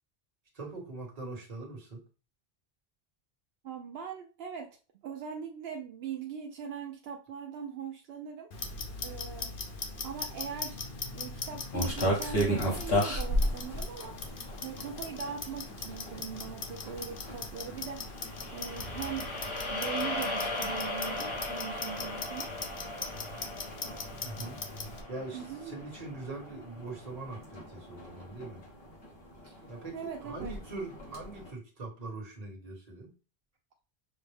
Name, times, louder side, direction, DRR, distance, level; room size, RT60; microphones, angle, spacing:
voice 1, 0.5-2.0 24.2-24.6 25.1-28.6 29.7-33.1, right 3 dB, 40° right, -1 dB, 1.3 m, -42 dB
voice 2, 3.6-4.8 5.0-8.5 9.0-9.5 10.0-10.8 11.1-14.2 14.6-18.1 18.5-19.3 19.7-22.5 25.3-25.8 29.4-29.6 29.9-30.5, right 7 dB, 75° right, 2 dB, 0.8 m, -40 dB
Clock, 8.5-25.0, left 4 dB, 60° left, 0.8 m, -41 dB
sound 1, 11.7-31.5, equal, 80° left, 1.6 m, -37 dB
sound 2, 18.1-26.4, left 2 dB, 35° left, 0.7 m, -38 dB
6.1 x 2.0 x 3.3 m, 0.34 s
omnidirectional pair, 1.0 m